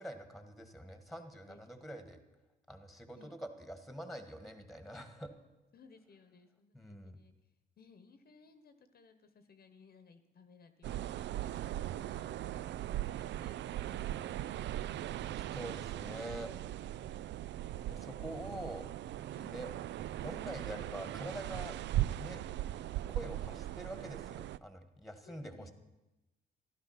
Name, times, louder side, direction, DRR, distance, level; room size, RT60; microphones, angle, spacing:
voice 1, 0.0-2.2 2.7-5.3 6.7-7.2 15.5-16.5 17.9-18.9 19.5-19.7 20.1-21.8 22.2-22.4 23.1-25.7, equal, ahead, 8 dB, 1.7 m, -45 dB
voice 2, 1.5-1.9 3.1-3.3 5.7-7.3 7.8-12.7 12.9-15.0 19.3-19.5 25.2-25.7, left 4 dB, 50° left, 9 dB, 1.1 m, -61 dB
sound 1, 10.8-24.6, right 13 dB, 65° right, 0.4 m, -39 dB
13.5 x 12.0 x 5.9 m, 0.99 s
cardioid pair, 90°, 20 cm